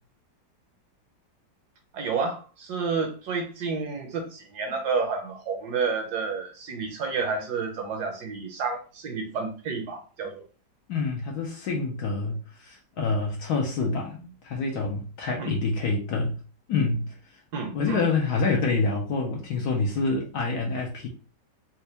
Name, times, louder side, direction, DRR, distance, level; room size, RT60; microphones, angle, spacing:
voice 1, 1.9-10.4 15.4-15.5 17.5-18.0, right 5 dB, 70° right, 1.2 m, -30 dB
voice 2, 10.9-16.4 16.7-17.1 17.7-21.1, left 3 dB, 70° left, 1.2 m, -27 dB
4.3 x 2.3 x 2.8 m
omnidirectional pair, 2.0 m